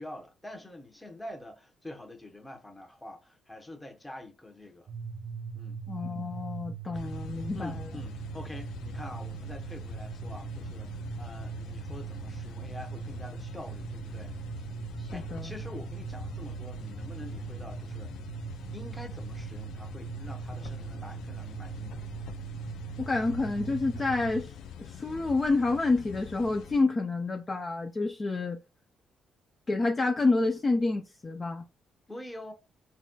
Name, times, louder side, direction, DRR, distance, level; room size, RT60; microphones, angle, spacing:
voice 1, 0.0-4.9 5.5-5.8 6.9-7.1 7.5-14.4 15.1-18.2 18.7-22.0 32.1-32.5, left 1 dB, 10° left, 1.0 m, -45 dB
sound 1, 4.9-24.4, right 6 dB, 70° right, 0.7 m, -40 dB
voice 2, 5.9-7.8 15.0-15.5 23.0-24.5 24.8-28.6 29.7-31.7, left 3 dB, 30° left, 0.5 m, -28 dB
sound 2, 6.9-26.8, left 7 dB, 85° left, 0.4 m, -45 dB
4.1 x 2.3 x 2.2 m
cardioid pair, 90°, 0 cm